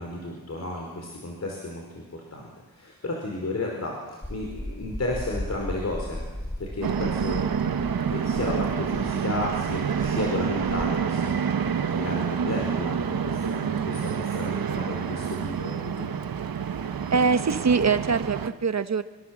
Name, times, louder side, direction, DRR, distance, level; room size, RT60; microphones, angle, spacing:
voice 1, 0.0-6.2 6.6-7.5 8.1-11.4 11.9-16.2, left 2 dB, 45° left, 0 dB, 5.0 m, -33 dB
sound 1, 4.2-10.9, left 1 dB, 10° left, 1.9 m, -37 dB
sound 2, 6.8-18.5, right 7 dB, 75° right, 1.4 m, -28 dB
voice 2, 17.1-19.0, right 5 dB, 50° right, 10 dB, 1.3 m, -23 dB
26.5 x 24.5 x 7.8 m, 1.3 s
wide cardioid pair, 125°, 36 cm